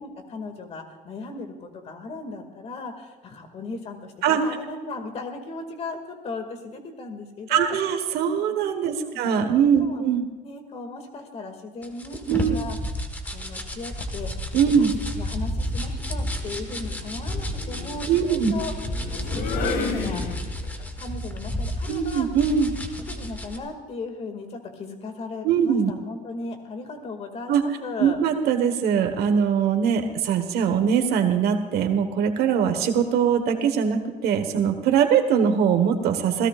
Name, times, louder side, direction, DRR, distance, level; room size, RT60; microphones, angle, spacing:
voice 1, 0.0-4.1 4.4-7.8 8.4-8.5 8.9-9.2 9.8-10.0 10.4-12.8 13.2-18.7 19.1-20.2 21.0-22.3 23.1-28.2, left 3 dB, 40° left, 5 dB, 2.2 m, -37 dB
voice 2, 7.5-10.2 12.3-12.6 14.5-14.9 18.1-18.5 21.9-22.8 25.4-25.9 27.5-27.6 28.0-36.5, right 7 dB, 80° right, 7 dB, 1.4 m, -22 dB
sound 1, 11.8-23.6, left 1 dB, 10° left, 1.5 m, -31 dB
sound 2, 13.7-14.2 15.6-20.8, left 4 dB, 80° left, 2.0 m, -34 dB
27.5 x 17.0 x 2.5 m, 1.4 s
cardioid pair, 165°, 16 cm